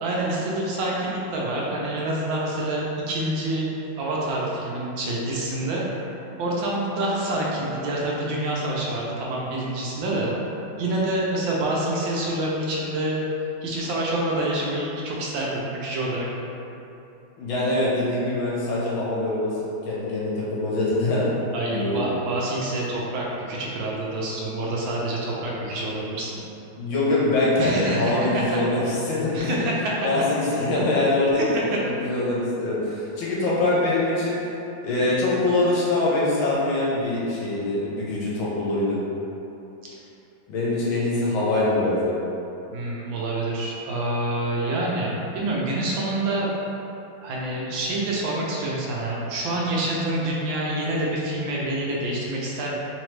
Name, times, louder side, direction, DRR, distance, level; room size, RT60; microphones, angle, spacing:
voice 1, 0.0-3.7 4.0-5.8 6.4-10.3 10.8-13.2 13.6-16.3 21.5-26.4 27.6-28.4 29.3-29.9 42.7-46.5 47.2-52.7, right 1 dB, 75° right, -4 dB, 1.4 m, -27 dB
voice 2, 17.4-19.5 19.9-21.3 21.7-22.1 26.8-29.6 29.8-34.4 34.8-39.0 40.5-42.2, left 2 dB, 75° left, -7 dB, 1.6 m, -23 dB
3.8 x 3.0 x 3.2 m, 2.8 s
omnidirectional pair, 2.2 m